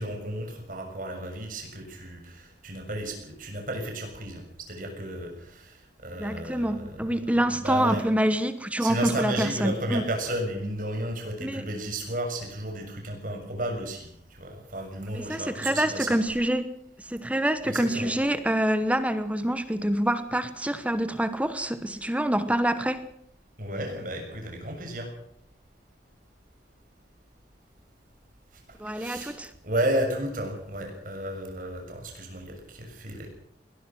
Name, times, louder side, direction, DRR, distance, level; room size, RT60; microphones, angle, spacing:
voice 1, 0.0-7.3 7.5-8.0 8.8-16.2 17.6-18.1 23.6-25.1 28.5-29.4 29.6-33.3, right 1 dB, 50° right, 3 dB, 6.9 m, -33 dB
voice 2, 6.2-10.0 11.4-11.7 15.1-23.1 28.8-29.5, right 1 dB, 10° right, 11 dB, 1.1 m, -26 dB
20.5 x 20.0 x 6.2 m, 0.70 s
head